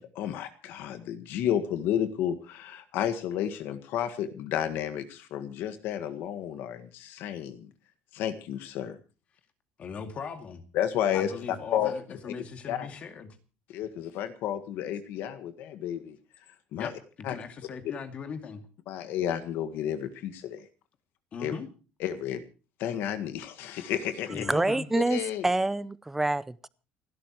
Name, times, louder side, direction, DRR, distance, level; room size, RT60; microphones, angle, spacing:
voice 1, 0.0-7.7 8.1-9.0 10.7-11.3 11.7-11.9 12.7-12.9 13.7-16.2 16.7-16.9 17.2-17.3 18.9-20.7 21.4-21.5 22.0-22.4 22.8-24.5 25.0-25.5, left 10 dB, 65° left, 1.7 m, -31 dB
voice 2, 9.8-10.6 11.1-13.4 16.7-18.6 21.3-21.7 24.3-24.9, left 6 dB, 35° left, 2.3 m, -39 dB
voice 3, 24.3-26.7, right 2 dB, 10° right, 0.6 m, -27 dB
29.0 x 12.0 x 3.0 m
cardioid pair, 160°, 4 cm